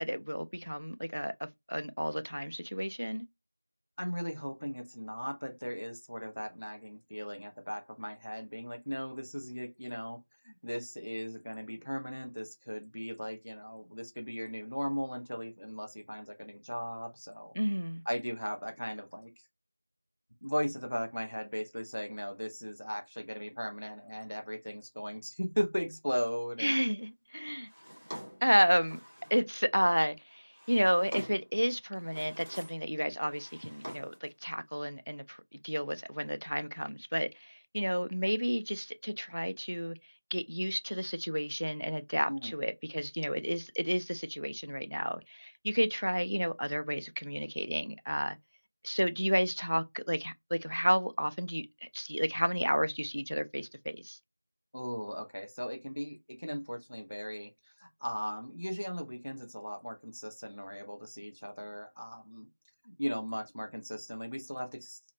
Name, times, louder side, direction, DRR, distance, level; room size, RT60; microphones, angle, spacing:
voice 1, 0.0-3.2 17.6-18.0 26.6-27.7 28.4-29.0 29.3-40.0 40.3-48.4 48.8-51.7 51.9-54.2, equal, 75° right, 0.3 m, -31 dB
voice 2, 4.0-10.2 10.4-17.5 18.1-19.3 20.4-26.7 42.3-42.5 54.7-62.5 62.8-65.0, equal, 50° left, 0.6 m, -37 dB
Drawer open or close, 27.7-29.5 30.3-31.6 32.0-32.9 33.2-34.3, equal, 30° right, 0.8 m, -47 dB
2.4 x 2.1 x 2.9 m
figure-of-eight pair, 180°, 0 cm